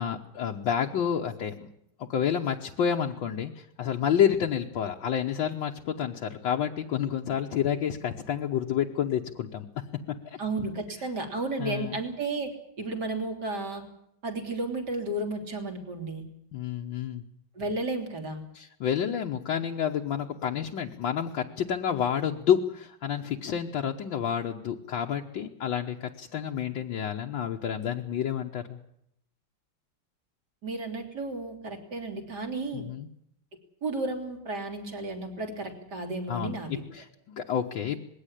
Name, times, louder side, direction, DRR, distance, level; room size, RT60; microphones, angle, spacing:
voice 1, 0.0-1.7 2.0-9.7 10.3-10.4 11.6-12.0 16.5-17.2 18.6-28.8 32.7-33.1 36.3-38.0, left 8 dB, 70° left, 1 dB, 1.7 m, -29 dB
voice 2, 10.4-12.5 12.8-13.8 14.2-16.2 17.6-18.4 30.6-32.8 33.8-36.8, right 2 dB, 50° right, 3 dB, 3.8 m, -33 dB
20.5 x 16.5 x 10.0 m, 0.76 s
omnidirectional pair, 2.2 m